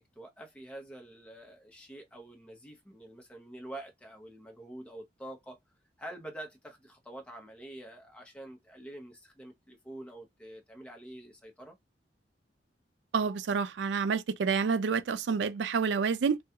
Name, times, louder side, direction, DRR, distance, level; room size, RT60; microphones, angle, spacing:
voice 1, 0.0-5.6 6.0-11.8, right 1 dB, 5° left, 0.7 m, -46 dB
voice 2, 13.1-16.4, right 5 dB, 75° right, 0.4 m, -28 dB
3.4 x 2.3 x 2.8 m
head